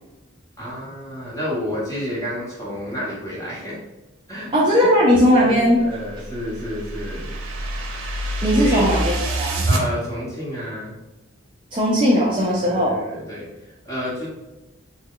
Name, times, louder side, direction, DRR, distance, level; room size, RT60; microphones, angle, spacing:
voice 1, 0.6-3.8 4.3-4.5 5.4-7.3 8.5-8.9 9.6-11.0 12.6-14.3, equal, 15° left, -6 dB, 1.0 m, -30 dB
voice 2, 4.5-5.8 8.4-9.7 11.7-13.0, equal, 25° right, -5 dB, 0.4 m, -18 dB
sound 1, 5.8-9.8, right 2 dB, 85° right, 0.6 m, -26 dB
3.4 x 2.1 x 3.6 m, 1.0 s
head